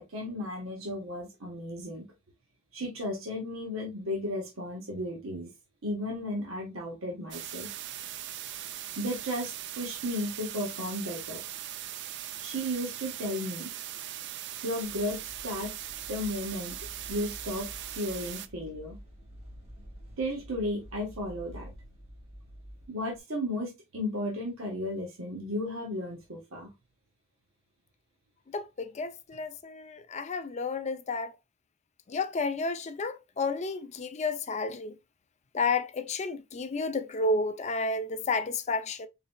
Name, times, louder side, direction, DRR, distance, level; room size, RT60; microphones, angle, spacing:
voice 1, 0.0-2.1 2.7-5.5 5.8-7.7 9.0-11.4 12.4-13.7 14.6-15.7 16.1-16.8 17.1-19.0 20.2-21.7 22.9-26.7, left 1 dB, 80° right, 1.2 m, -34 dB
sound 1, 7.3-18.5, right 12 dB, 60° right, 0.4 m, -40 dB
sound 2, 14.8-23.2, equal, 30° right, 1.8 m, -49 dB
voice 2, 28.5-31.3 32.1-34.9 35.5-39.1, left 3 dB, 35° left, 0.4 m, -31 dB
4.1 x 4.0 x 2.3 m
head